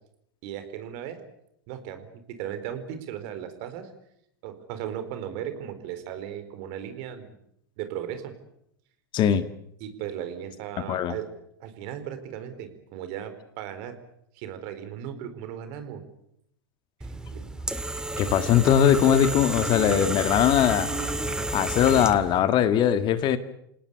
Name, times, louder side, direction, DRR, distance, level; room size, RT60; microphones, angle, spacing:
voice 1, 0.4-1.2 1.7-3.9 4.4-7.4 7.8-8.3 9.8-11.3 11.6-14.0 14.3-16.0 17.1-17.4, right 10 dB, 55° right, 10 dB, 4.3 m, -36 dB
voice 2, 9.1-9.5 10.9-11.1 18.2-20.9 21.5-23.4, left 9 dB, 40° left, 11 dB, 1.9 m, -21 dB
sound 1, 17.0-22.4, right 2 dB, 5° right, 2.0 m, -31 dB
28.0 x 18.5 x 8.5 m, 0.76 s
hypercardioid pair, 100°, 12 cm